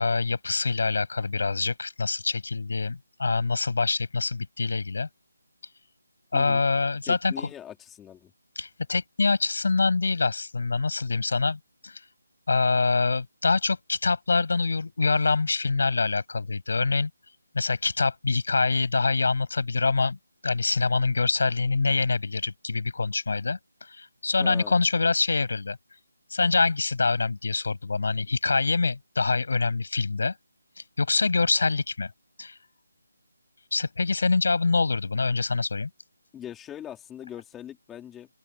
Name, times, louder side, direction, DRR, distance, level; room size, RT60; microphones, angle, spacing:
voice 1, 0.0-5.1 6.3-7.5 8.6-12.0 12.5-17.1 17.5-20.2 20.4-23.6 23.9-25.8 26.3-30.3 31.0-32.1 32.4-32.6 33.7-35.9, left 4 dB, 65° left, 7.3 m, -25 dB
voice 2, 7.0-8.3 24.4-24.8 36.3-38.3, left 10 dB, 10° left, 3.7 m, -41 dB
open air
figure-of-eight pair, 165°, 0 cm